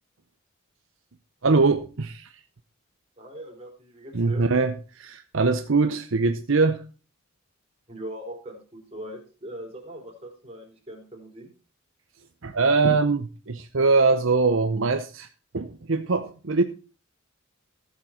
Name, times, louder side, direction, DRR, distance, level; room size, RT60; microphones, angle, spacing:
voice 1, 1.4-2.3 4.1-6.8 12.4-15.3 15.5-16.6, right 3 dB, 65° right, 8 dB, 0.8 m, -22 dB
voice 2, 3.2-4.5 7.9-11.5, right 1 dB, 30° right, 0 dB, 3.7 m, -40 dB
15.0 x 7.4 x 4.3 m, 0.34 s
head